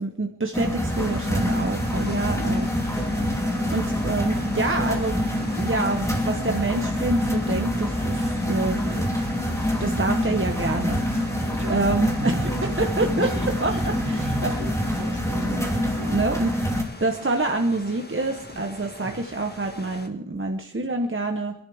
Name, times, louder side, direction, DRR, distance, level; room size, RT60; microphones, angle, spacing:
voice 1, 0.0-2.7 3.0-3.2 3.7-9.1 9.8-11.3 11.7-12.3 12.8-13.3 13.6-13.7 14.4-14.5 16.1-16.5 17.0-21.5, right 2 dB, 40° right, 3 dB, 1.1 m, -27 dB
sound 1, 0.5-16.8, equal, 10° left, 3.2 m, -26 dB
sound 2, 0.9-20.1, left 1 dB, 30° left, 1.5 m, -42 dB
voice 2, 11.5-11.9 12.2-16.2 19.0-19.2, right 1 dB, 65° right, 1 dB, 2.8 m, -37 dB
25.5 x 11.0 x 3.5 m, 0.73 s
wide cardioid pair, 40°, 32 cm